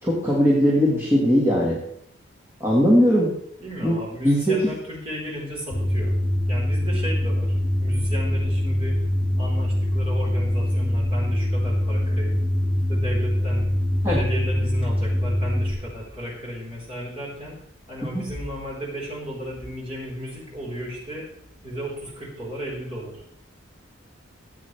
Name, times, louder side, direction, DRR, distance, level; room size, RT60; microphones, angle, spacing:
voice 1, 0.0-1.8 2.6-3.3 3.8-4.0 4.2-4.6 14.0-14.2 18.1-18.2, equal, 15° right, -5 dB, 1.7 m, -19 dB
voice 2, 3.6-6.2 6.5-9.0 9.4-12.4 12.9-13.7 14.0-17.6 17.9-21.3 21.6-23.2, equal, 30° right, -4 dB, 4.0 m, -34 dB
sound 1, 5.7-15.7, left 1 dB, 15° left, 3.7 m, -23 dB
14.0 x 8.4 x 3.3 m, 0.73 s
head